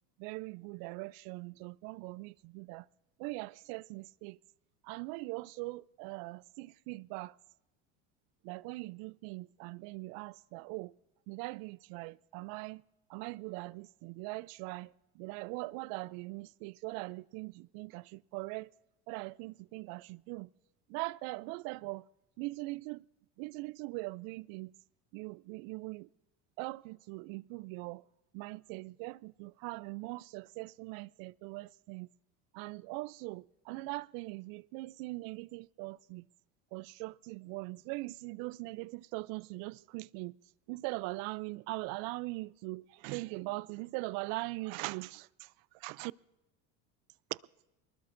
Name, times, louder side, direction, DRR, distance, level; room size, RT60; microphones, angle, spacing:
voice 1, 0.2-2.9 3.2-4.4 4.8-7.3 8.4-10.9 11.3-12.8 13.1-18.7 19.1-20.5 20.9-22.1 22.4-23.0 23.4-24.7 25.1-26.1 26.6-28.0 28.3-32.1 32.5-36.3 36.7-40.3 40.7-46.1 47.3-47.4, right 23 dB, 65° right, 0.5 m, -41 dB
23.0 x 20.0 x 2.6 m
supercardioid pair, 100°, 38 cm